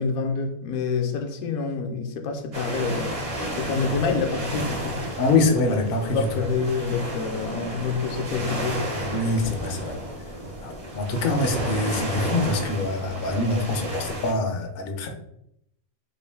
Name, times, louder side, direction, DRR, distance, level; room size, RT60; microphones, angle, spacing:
voice 1, 0.0-5.0 5.7-5.8 6.1-8.9, left 5 dB, 75° left, 1.0 m, -27 dB
sound 1, 2.5-14.3, right 1 dB, 40° right, 0.5 m, -32 dB
voice 2, 5.2-6.2 9.1-10.0 10.6-15.1, left 2 dB, 60° left, 0.6 m, -24 dB
3.6 x 2.5 x 3.3 m
omnidirectional pair, 1.5 m